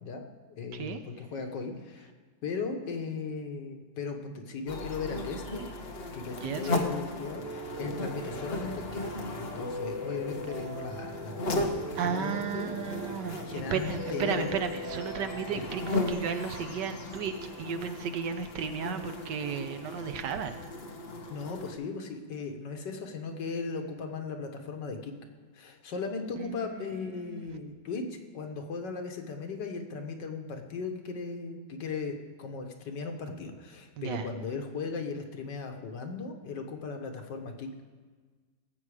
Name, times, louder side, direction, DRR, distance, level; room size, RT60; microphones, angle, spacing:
voice 1, 0.0-2.1 2.4-5.6 6.1-9.0 9.4-12.7 13.4-14.5 15.5-15.6 21.3-25.1 25.5-37.7, left 4 dB, 80° left, 4 dB, 1.8 m, -37 dB
sound 1, 4.7-21.7, left 2 dB, 40° left, 1.1 m, -37 dB
voice 2, 6.4-6.8 12.0-13.4 13.7-15.8 16.1-20.6 26.4-26.6 27.3-27.5 34.0-34.3, right 7 dB, 80° right, 8 dB, 1.5 m, -34 dB
Piano, 7.4-16.1, equal, 10° right, 1.0 m, -40 dB
18.5 x 7.9 x 4.9 m, 1.4 s
omnidirectional pair, 1.9 m